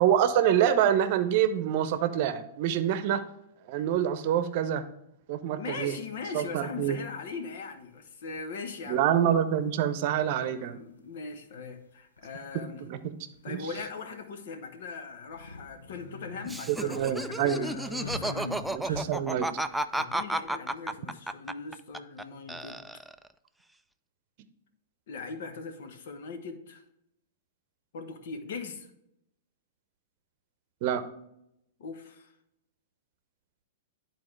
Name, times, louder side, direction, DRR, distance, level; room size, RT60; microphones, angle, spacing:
voice 1, 0.0-3.2 3.7-4.8 5.3-6.0 6.3-7.0 8.9-10.8 12.9-13.0 13.5-13.6 16.7-17.7 18.7-19.5 30.8-31.0, right 10 dB, 50° right, 11 dB, 0.8 m, -26 dB
voice 2, 5.6-9.1 10.6-12.8 13.4-18.5 19.9-22.9 25.1-26.8 27.9-28.9 31.8-32.3, left 4 dB, 65° left, 7 dB, 1.2 m, -40 dB
sound 1, 6.8-7.0 8.4-8.5 9.9-10.0 10.2-10.3 12.2-12.3 12.6-12.7 13.3-13.8 15.2-19.4, left 2 dB, 90° left, 1.0 m, -41 dB
Laughter, 16.4-22.2 22.5-23.3, right 1 dB, 5° right, 0.3 m, -32 dB
10.5 x 4.2 x 3.2 m, 0.80 s
hypercardioid pair, 110°, 0 cm